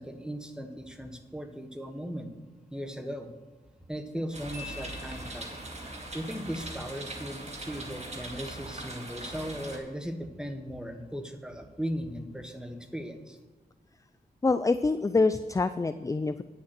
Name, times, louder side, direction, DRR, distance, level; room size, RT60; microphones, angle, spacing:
voice 1, 0.0-2.3 2.7-3.3 3.9-5.6 6.1-13.4, equal, 5° right, 6 dB, 1.4 m, -37 dB
sound 1, 4.3-9.8, right 2 dB, 40° right, 2.0 m, -41 dB
Marimba xylophone, 4.5-5.9, left 6 dB, 90° right, 3.1 m, -47 dB
voice 2, 14.4-16.4, left 3 dB, 20° left, 12 dB, 0.4 m, -26 dB
9.7 x 6.5 x 6.0 m, 1.3 s
cardioid pair, 55°, 17 cm